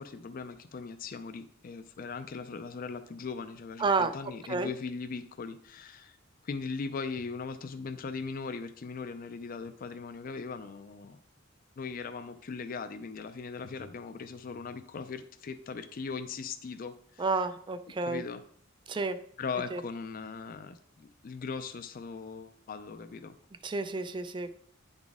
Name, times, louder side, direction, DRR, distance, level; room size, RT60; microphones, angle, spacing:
voice 1, 0.0-6.2 6.4-11.2 11.8-17.3 18.0-18.4 19.4-23.4, left 5 dB, 45° left, 10 dB, 0.4 m, -39 dB
voice 2, 3.8-4.1 4.5-4.7 17.2-18.2 18.9-19.2 19.7-19.8 23.6-24.6, right 3 dB, 25° right, 11 dB, 0.4 m, -30 dB
9.7 x 4.1 x 3.5 m, 0.63 s
head